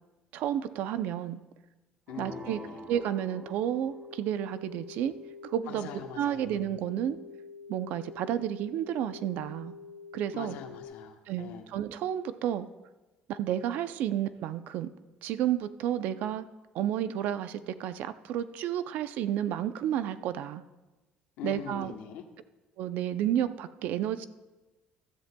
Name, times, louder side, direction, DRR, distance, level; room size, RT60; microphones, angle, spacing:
voice 1, 0.3-1.4 2.2-2.6 2.9-5.1 5.4-5.9 6.2-7.2 7.7-9.7 10.1-10.6 11.3-12.7 13.3-14.9 15.2-16.4 16.7-20.6 21.4-21.9 22.8-24.3, right 10 dB, 65° right, 12 dB, 0.5 m, -31 dB
voice 2, 2.1-2.7 5.7-6.6 10.3-11.7 21.4-22.2, left 9 dB, 80° left, 3 dB, 1.1 m, -43 dB
sound 1, 2.1-4.1, left 1 dB, 45° right, 2.8 m, -46 dB
sound 2, 2.9-10.8, left 5 dB, 55° left, 2.2 m, -47 dB
15.5 x 13.0 x 2.3 m, 1.1 s
cardioid pair, 155°, 3 cm